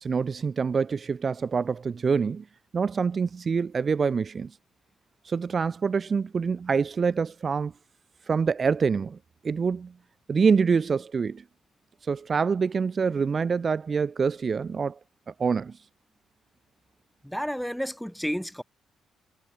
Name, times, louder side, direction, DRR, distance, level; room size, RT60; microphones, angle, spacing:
voice 1, 0.0-2.4 2.7-4.5 5.2-7.7 8.3-9.2 9.4-9.9 10.3-11.4 12.0-15.0 15.4-15.8, right 5 dB, 40° right, 0.4 m, -25 dB
voice 2, 17.2-18.6, equal, ahead, 0.9 m, -31 dB
cardioid pair, 90°, 0 cm